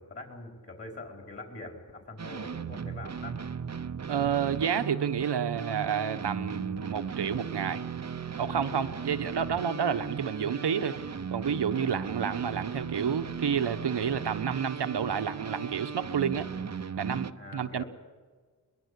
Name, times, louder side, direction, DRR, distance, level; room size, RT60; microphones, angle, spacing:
voice 1, 0.0-3.4 17.4-17.8, left 2 dB, 35° left, 2 dB, 4.6 m, -44 dB
sound 1, 2.2-17.3, right 6 dB, 40° right, 0.8 m, -37 dB
voice 2, 4.1-7.8 8.4-11.0 11.3-16.5 17.0-17.8, right 7 dB, 85° right, 9 dB, 1.2 m, -30 dB
22.5 x 21.0 x 8.3 m, 1.5 s
wide cardioid pair, 80°, 40 cm